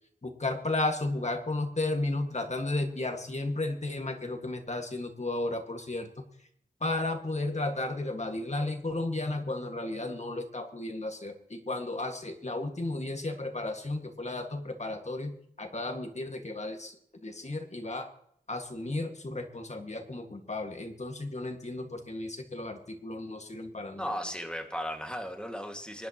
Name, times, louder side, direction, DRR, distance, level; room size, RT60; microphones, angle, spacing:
voice 1, 0.2-6.1 6.8-15.3 15.6-17.0 17.2-18.1 18.5-24.1, left 2 dB, 50° left, 5 dB, 1.8 m, -33 dB
voice 2, 24.0-26.1, equal, 5° left, 4 dB, 2.0 m, -36 dB
25.0 x 11.0 x 3.0 m, 0.70 s
wide cardioid pair, 60°, 15 cm